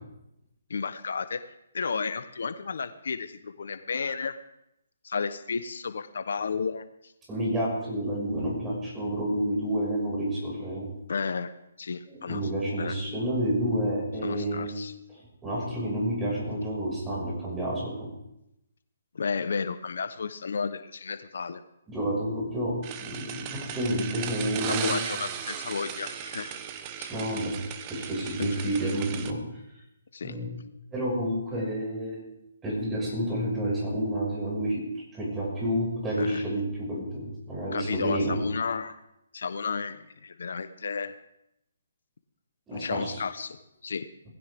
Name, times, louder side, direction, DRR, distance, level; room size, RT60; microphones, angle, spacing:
voice 1, 0.7-1.4 1.7-4.4 5.0-7.1 11.1-11.5 11.8-12.4 12.8-13.0 14.2-14.9 19.1-21.6 24.7-26.6 27.0-27.1 28.4-28.5 30.1-30.4 36.2-36.4 37.7-39.0 39.3-41.1 42.7-43.6 43.8-44.1, left 5 dB, 70° left, 11 dB, 1.0 m, -32 dB
voice 2, 7.3-10.9 12.1-14.7 15.1-18.1 21.9-25.0 27.1-27.6 27.9-29.4 30.2-30.5 30.9-32.2 32.6-34.9 35.1-38.4 42.7-43.2, right 1 dB, 10° right, -4 dB, 6.0 m, -29 dB
sound 1, 22.8-29.3, right 9 dB, 25° right, 1.1 m, -36 dB
19.5 x 16.5 x 3.7 m, 0.85 s
hypercardioid pair, 155°, 0 cm